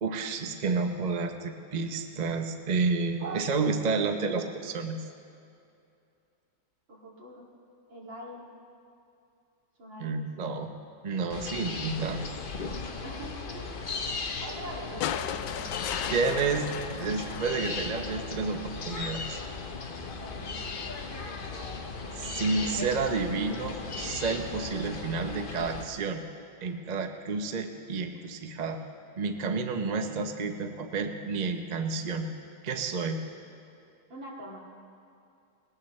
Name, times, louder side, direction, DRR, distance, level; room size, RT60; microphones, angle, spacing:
voice 1, 0.0-5.0 10.0-10.7 11.0-12.3 16.1-16.7 17.0-19.4 22.1-26.2 26.6-28.8 29.2-32.3 32.6-33.2, right 4 dB, 40° right, 5 dB, 0.5 m, -30 dB
voice 2, 6.9-7.5 7.9-8.5 9.8-10.2 13.0-13.9 14.4-16.8 19.9-20.6 34.1-34.6, equal, 85° right, -4 dB, 3.3 m, -44 dB
sound 1, 11.3-25.8, left 4 dB, 40° left, 0.7 m, -37 dB
sound 2, 15.0-18.3 19.6-19.7, left 10 dB, 75° left, 1.2 m, -36 dB
20.0 x 18.5 x 3.2 m, 2.5 s
omnidirectional pair, 2.0 m